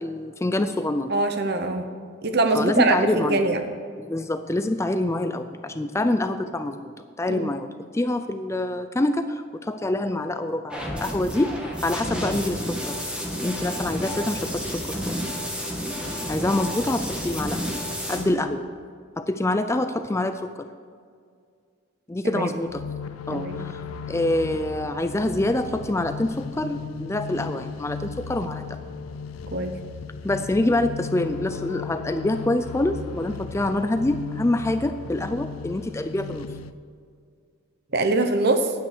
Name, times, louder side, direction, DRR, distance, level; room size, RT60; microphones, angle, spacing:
voice 1, 0.0-1.1 2.5-3.4 4.0-6.9 7.2-11.5 11.8-13.0 13.4-15.0 16.3-17.6 18.1-18.6 19.2-20.7 22.1-22.8 23.3-23.8 24.1-28.8 30.2-36.5, left 1 dB, 15° left, 9 dB, 0.3 m, -26 dB
voice 2, 1.1-1.9 2.2-3.6 7.3-7.5 18.3-18.4 22.2-22.5 23.3-23.6 29.5-29.7 37.9-38.7, right 2 dB, 50° right, 7 dB, 0.9 m, -23 dB
sound 1, 10.7-18.2, equal, 5° right, 1.6 m, -30 dB
sound 2, 22.7-36.7, left 5 dB, 80° left, 0.5 m, -36 dB
10.5 x 9.3 x 6.6 m, 2.2 s
head